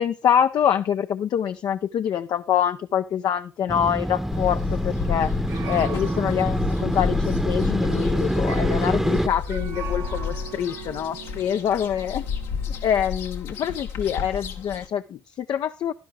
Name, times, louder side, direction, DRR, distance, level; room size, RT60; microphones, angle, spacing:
voice 1, 0.0-5.3 5.7-12.3 12.8-15.9, left 9 dB, 65° left, 9 dB, 0.5 m, -25 dB
Motorcycle, 3.7-9.3, right 1 dB, 5° right, 0.8 m, -26 dB
sound 1, 4.3-14.9, left 6 dB, 85° left, 1.2 m, -31 dB
sound 2, 5.5-13.1, right 8 dB, 65° right, 1.2 m, -41 dB
11.0 x 11.0 x 3.6 m, 0.30 s
hypercardioid pair, 45°, 7 cm